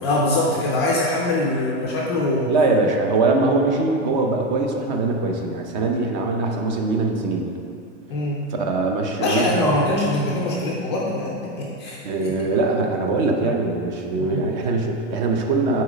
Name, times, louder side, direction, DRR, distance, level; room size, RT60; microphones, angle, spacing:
voice 1, 0.0-2.5 8.1-8.4 9.2-12.3 14.2-14.4, left 1 dB, 25° left, -3 dB, 0.4 m, -23 dB
voice 2, 2.5-7.5 8.5-9.7 12.0-15.8, right 3 dB, 35° right, 2 dB, 0.7 m, -22 dB
8.5 x 4.1 x 4.9 m, 2.5 s
supercardioid pair, 170°, 37 cm